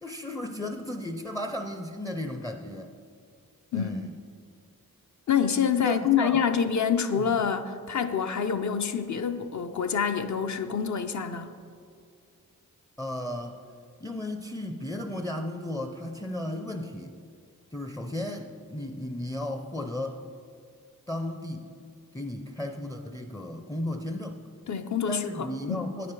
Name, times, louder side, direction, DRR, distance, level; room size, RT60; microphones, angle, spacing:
voice 1, 0.0-2.9 3.7-4.1 5.8-6.4 7.2-7.3 13.0-13.6 14.0-17.1 17.7-20.2 21.1-21.7 22.1-24.4 25.1-26.1, left 1 dB, 10° left, 0.4 m, -34 dB
voice 2, 5.3-11.5 24.7-25.9, left 7 dB, 55° left, 0.6 m, -27 dB
9.1 x 4.9 x 4.7 m
cardioid pair, 50°, 36 cm